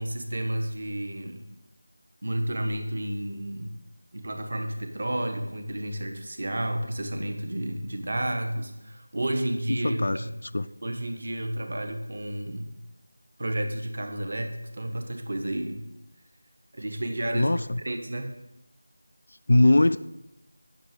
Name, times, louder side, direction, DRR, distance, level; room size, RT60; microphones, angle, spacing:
voice 1, 0.0-1.5 2.2-3.7 4.1-10.3 10.8-12.8 13.4-15.8 16.7-17.5 17.8-18.3, right 1 dB, 45° right, 5 dB, 1.3 m, -31 dB
voice 2, 9.7-10.7 17.3-17.8 19.5-20.0, left 2 dB, 50° left, 12 dB, 0.4 m, -22 dB
10.5 x 6.1 x 6.7 m, 0.94 s
figure-of-eight pair, 180°, 0 cm